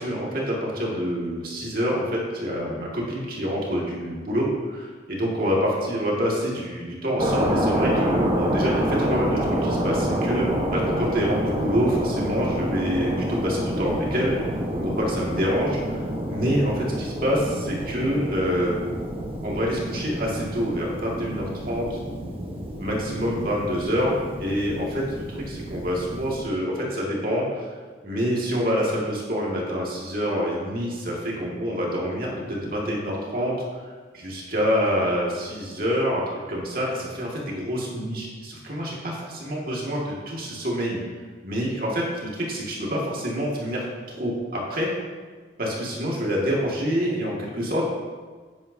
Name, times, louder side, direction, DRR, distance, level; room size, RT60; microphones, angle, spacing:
voice 1, 0.0-14.3 14.7-15.8 16.3-18.8 19.4-22.0 22.8-27.7 28.0-33.5 33.8-41.0 41.4-44.9 45.6-47.8, equal, 55° right, -3 dB, 2.0 m, -26 dB
sound 1, 7.2-26.4, equal, 30° right, 1.2 m, -28 dB
10.0 x 9.4 x 2.7 m, 1.4 s
head